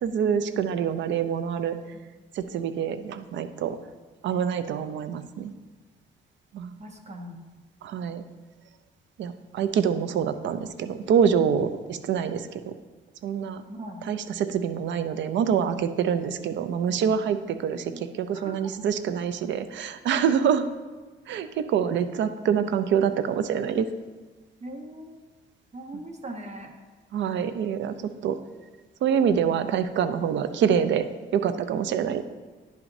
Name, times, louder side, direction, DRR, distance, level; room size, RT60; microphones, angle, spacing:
voice 1, 0.0-1.8 2.3-3.8 4.2-5.5 6.5-6.7 7.8-8.2 9.2-12.7 13.2-13.6 14.1-20.7 21.3-23.9 27.1-28.4 29.0-31.0 31.3-32.2, right 7 dB, 70° right, 11 dB, 0.5 m, -26 dB
voice 2, 6.8-7.4 13.7-14.1 17.7-18.0 18.3-18.7 24.6-25.2 25.7-26.7, right 1 dB, 35° right, 3 dB, 1.1 m, -40 dB
10.0 x 5.8 x 2.7 m, 1.3 s
cardioid pair, 90°, 20 cm